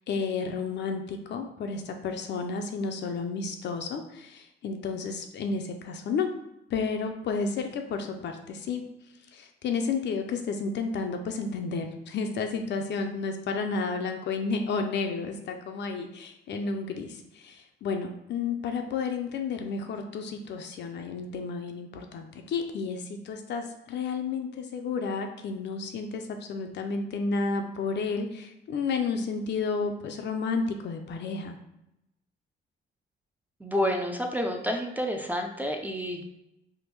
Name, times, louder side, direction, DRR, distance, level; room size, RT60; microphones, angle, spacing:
voice 1, 0.1-6.3 6.7-8.8 9.3-31.6, left 4 dB, 60° left, 5 dB, 0.5 m, -31 dB
voice 2, 33.6-36.2, equal, 10° right, 3 dB, 0.4 m, -29 dB
3.4 x 2.2 x 3.1 m, 0.85 s
cardioid pair, 90°, 20 cm